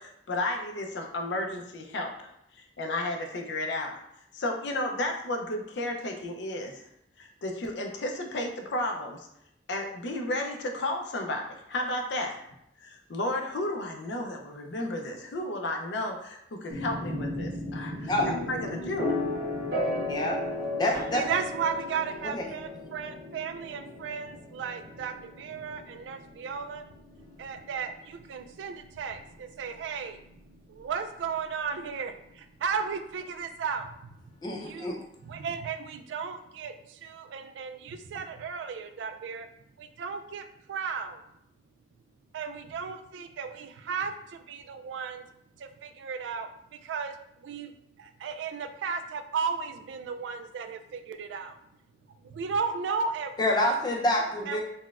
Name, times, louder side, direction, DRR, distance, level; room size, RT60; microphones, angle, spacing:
voice 1, 0.0-2.1 2.5-4.0 4.3-6.9 7.2-9.3 9.7-12.5 12.8-18.1 18.5-19.1, left 1 dB, 80° left, 3 dB, 0.5 m, -33 dB
sound 1, 16.7-30.5, left 1 dB, 75° right, 1.1 m, -35 dB
voice 2, 20.1-20.4 20.8-21.2 22.3-22.4 34.4-35.0 53.4-54.6, left 1 dB, 25° left, 0 dB, 0.4 m, -27 dB
voice 3, 21.1-26.9 27.4-30.2 30.7-35.0 35.2-39.5 39.8-41.2 42.3-45.3 45.6-47.2 47.4-47.7 48.0-51.6 52.2-53.7 54.5-54.6, right 6 dB, 90° right, 8 dB, 0.3 m, -35 dB
4.0 x 2.1 x 2.3 m, 0.76 s
head